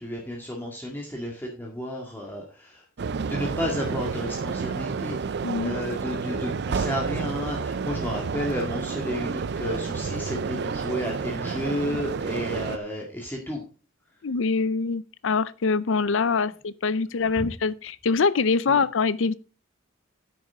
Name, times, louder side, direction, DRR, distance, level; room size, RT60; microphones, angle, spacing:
voice 1, 0.0-2.8 3.2-13.6 18.7-18.8, left 1 dB, 10° left, 1.9 m, -32 dB
sound 1, 3.0-12.8, right 5 dB, 55° right, 0.4 m, -30 dB
voice 2, 5.4-5.7 14.2-19.4, left 4 dB, 70° left, 0.5 m, -24 dB
10.5 x 9.1 x 3.6 m
head